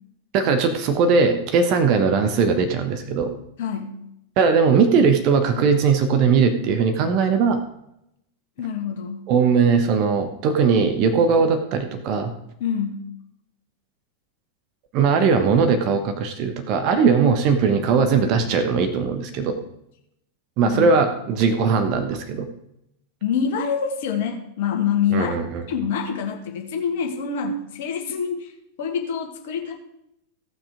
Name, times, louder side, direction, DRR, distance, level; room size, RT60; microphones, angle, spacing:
voice 1, 0.3-3.3 4.4-7.6 9.3-12.3 14.9-19.6 20.6-22.5 25.1-25.6, right 5 dB, 40° right, 7 dB, 1.1 m, -19 dB
voice 2, 3.6-4.0 8.6-9.3 12.6-13.1 20.6-21.0 23.2-25.3 25.7-28.5 28.8-29.7, left 7 dB, 50° left, 3 dB, 1.8 m, -26 dB
16.0 x 5.9 x 5.0 m, 0.80 s
figure-of-eight pair, 90°, 0 cm